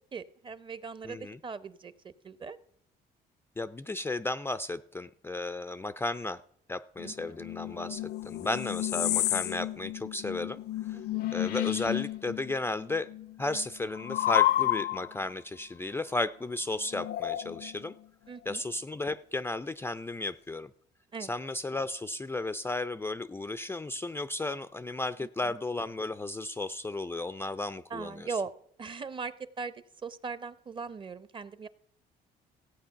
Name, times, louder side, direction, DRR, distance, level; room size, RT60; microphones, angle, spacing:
voice 1, 0.1-2.6 7.0-7.4 10.9-11.3 18.3-18.6 21.1-21.3 25.2-25.5 27.9-28.5 28.8-29.7 30.0-31.7, right 5 dB, 30° right, 15 dB, 0.7 m, -39 dB
voice 2, 1.0-1.4 3.6-6.4 6.7-10.6 10.9-11.0 11.3-13.1 13.4-17.9 18.5-20.7 21.2-28.3, left 2 dB, 15° left, 13 dB, 0.4 m, -34 dB
sound 1, 7.0-12.6 12.8-15.2 16.9-17.9, left 14 dB, 70° left, 0.6 m, -31 dB
16.0 x 8.3 x 5.7 m, 0.66 s
cardioid pair, 110°, 17 cm